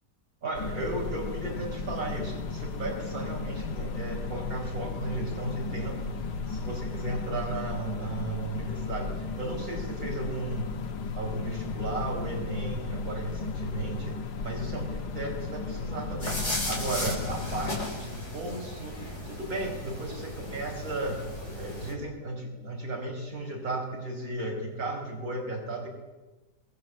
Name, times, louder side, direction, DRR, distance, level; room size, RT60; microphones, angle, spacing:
voice 1, 0.4-10.7 11.1-25.9, right 2 dB, 60° right, -1 dB, 5.4 m, -35 dB
sound 1, 0.5-17.8, left 4 dB, 85° left, 1.8 m, -35 dB
sound 2, 16.2-21.9, left 1 dB, 40° left, 6.7 m, -35 dB
27.0 x 20.5 x 7.9 m, 1.2 s
omnidirectional pair, 1.7 m